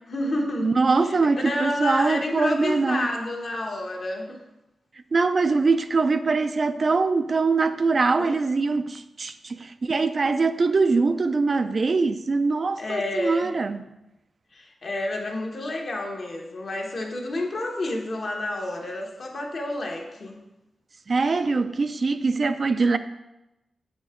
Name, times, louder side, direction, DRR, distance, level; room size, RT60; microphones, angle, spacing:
voice 1, 0.0-0.7 1.0-1.2 1.4-4.4 8.2-8.4 12.8-13.5 14.5-20.4 21.2-21.4, left 1 dB, 55° left, 1.2 m, -30 dB
voice 2, 0.6-3.1 5.1-13.8 21.1-23.0, right 4 dB, 45° right, 0.3 m, -23 dB
7.6 x 5.1 x 3.6 m
wide cardioid pair, 100°, 0 cm